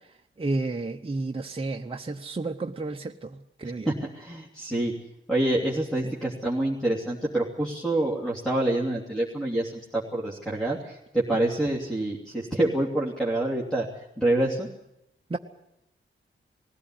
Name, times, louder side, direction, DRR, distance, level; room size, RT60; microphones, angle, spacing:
voice 1, 0.4-3.3 3.6-3.9 15.3-15.4, right 3 dB, 25° right, 3 dB, 0.9 m, -31 dB
voice 2, 3.9-4.9 5.3-14.7, right 1 dB, 5° left, -3 dB, 2.9 m, -27 dB
20.0 x 16.0 x 9.9 m, 0.82 s
wide cardioid pair, 110°, 21 cm